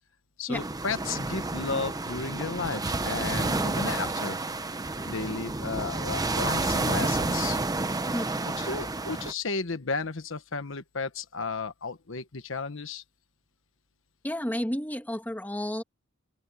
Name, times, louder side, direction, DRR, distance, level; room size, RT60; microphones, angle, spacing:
voice 1, 0.4-4.4 5.0-7.6 8.6-13.0, left 4 dB, 70° left, 1.3 m, -33 dB
sound 1, 0.5-9.3, right 2 dB, 20° right, 0.9 m, -30 dB
voice 2, 14.2-15.8, equal, 10° left, 2.0 m, -31 dB
open air
head